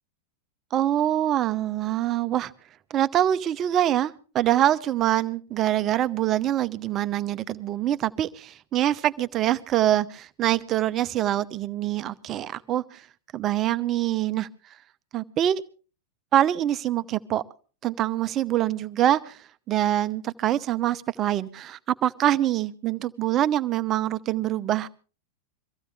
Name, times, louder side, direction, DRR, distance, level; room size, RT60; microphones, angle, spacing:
voice 1, 0.7-2.5 2.9-13.0 13.3-14.5 15.1-15.6 16.3-17.4 17.8-19.4 19.7-24.9, right 12 dB, 30° right, 14 dB, 0.8 m, -24 dB
23.5 x 15.0 x 3.4 m, 0.38 s
figure-of-eight pair, 90°, 0 cm